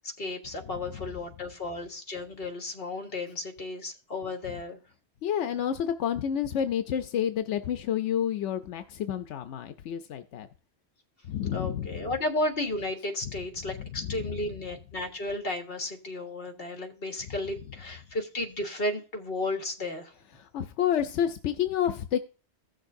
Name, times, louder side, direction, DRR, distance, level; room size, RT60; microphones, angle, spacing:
voice 1, 0.2-4.8 11.5-20.1, left 2 dB, 55° left, 4 dB, 1.7 m, -33 dB
voice 2, 5.2-10.5 11.3-12.0 13.7-14.3 20.4-22.2, left 9 dB, 85° left, 9 dB, 0.9 m, -29 dB
15.5 x 6.5 x 2.6 m, 0.37 s
omnidirectional pair, 1.2 m